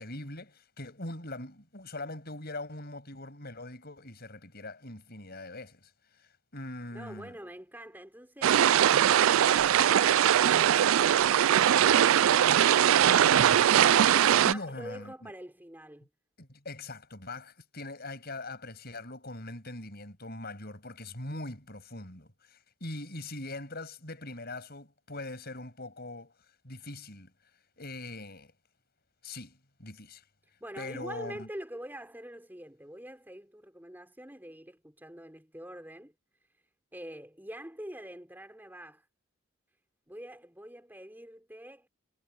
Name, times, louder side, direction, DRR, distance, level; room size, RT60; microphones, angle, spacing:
voice 1, 0.0-7.3 14.4-15.3 16.4-26.3 26.6-27.3 27.8-28.5 29.2-30.2 30.8-31.5, left 2 dB, 50° left, 6.9 m, -42 dB
voice 2, 6.9-8.6 9.2-13.2 14.0-16.1 30.6-36.1 36.9-39.0 40.1-41.9, right 1 dB, 10° right, 3.8 m, -45 dB
sound 1, 8.4-14.5, right 10 dB, 75° right, 0.4 m, -21 dB
head